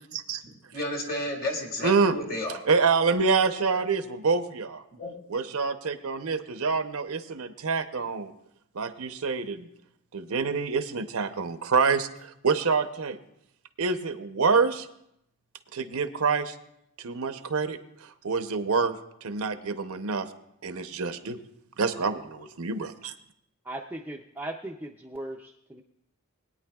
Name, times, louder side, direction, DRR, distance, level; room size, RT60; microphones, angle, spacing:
voice 1, 0.4-2.6 4.9-5.1, left 1 dB, 40° left, 3 dB, 1.7 m, -32 dB
voice 2, 1.8-2.2 2.7-4.8 5.3-8.3 8.7-9.7 10.1-13.2 13.8-14.9 15.7-16.5 17.0-19.0 19.2-20.3 20.6-21.4 21.8-23.1, right 4 dB, 75° right, 9 dB, 0.7 m, -26 dB
voice 3, 23.6-25.8, right 1 dB, 10° right, 0 dB, 0.4 m, -38 dB
20.5 x 9.3 x 2.3 m, 0.78 s
head